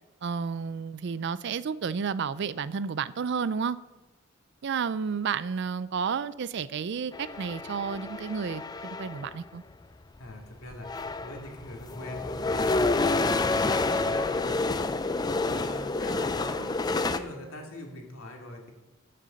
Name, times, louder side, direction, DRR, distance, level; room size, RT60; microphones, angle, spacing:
voice 1, 0.2-3.8 4.6-9.6, right 6 dB, 55° right, 17 dB, 0.4 m, -31 dB
sound 1, 7.1-9.4 10.3-10.4 10.7-17.2, left 3 dB, 20° left, 0.4 m, -28 dB
voice 2, 10.2-18.7, left 1 dB, 90° left, 1 dB, 2.3 m, -43 dB
14.0 x 6.7 x 5.2 m, 1.1 s
head